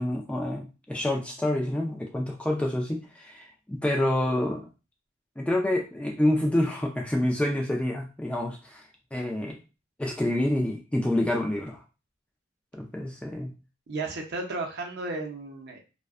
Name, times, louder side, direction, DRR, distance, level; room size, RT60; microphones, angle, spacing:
voice 1, 0.0-4.6 5.4-8.8 9.1-9.6 10.0-11.8 12.7-13.5, left 1 dB, 5° left, 0 dB, 0.3 m, -27 dB
voice 2, 13.9-15.8, right 3 dB, 55° right, 2 dB, 0.5 m, -33 dB
2.5 x 2.1 x 2.3 m, 0.31 s
head